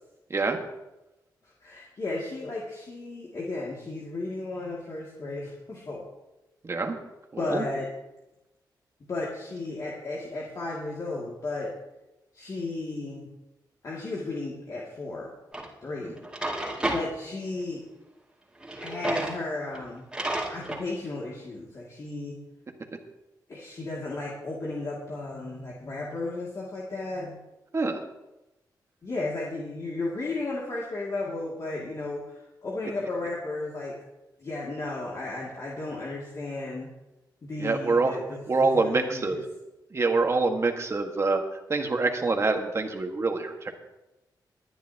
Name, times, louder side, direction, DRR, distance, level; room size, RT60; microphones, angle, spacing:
voice 1, 1.4-6.1 7.4-7.9 9.1-11.7 12.3-13.3 13.8-15.3 15.8-16.2 16.9-17.8 18.8-20.0 20.5-22.4 23.5-27.4 29.0-33.9 34.4-36.9 37.4-39.4, left 2 dB, 45° left, -4 dB, 2.5 m, -34 dB
voice 2, 6.6-7.0 7.3-7.6 16.0-16.1 27.7-28.0 37.6-38.2 38.5-39.4 39.9-41.4 41.7-43.7, right 3 dB, 35° right, 4 dB, 1.7 m, -25 dB
Drawer open or close, 15.5-15.7 16.2-17.0 18.6-19.4 19.7-19.8 20.1-20.8, right 1 dB, 10° right, 2.4 m, -31 dB
20.5 x 10.5 x 2.9 m, 0.98 s
cardioid pair, 90°, 8 cm